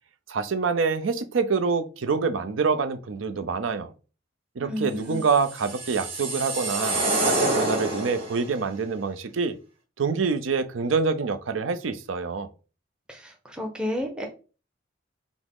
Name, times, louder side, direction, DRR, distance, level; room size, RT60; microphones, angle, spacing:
voice 1, 0.3-3.9 4.6-9.6 10.0-12.5, right 5 dB, 85° right, 0.5 m, -26 dB
voice 2, 4.6-5.2 13.1-14.3, left 1 dB, 5° right, 0.6 m, -31 dB
sound 1, 5.3-8.5, right 2 dB, 30° right, 1.0 m, -27 dB
6.0 x 2.0 x 3.6 m
head